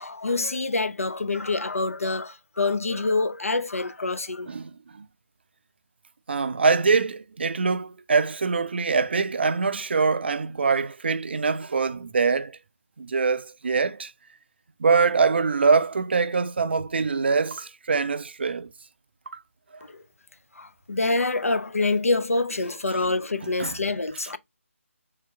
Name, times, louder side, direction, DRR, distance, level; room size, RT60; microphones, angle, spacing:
voice 1, 0.0-4.5 19.8-20.0 20.5-24.4, left 3 dB, 80° left, 0.5 m, -26 dB
voice 2, 4.5-5.1 6.3-12.6 13.0-14.1 14.8-18.7 23.6-23.8, right 4 dB, 50° right, 0.4 m, -24 dB
3.3 x 2.8 x 3.3 m
figure-of-eight pair, 155°, 8 cm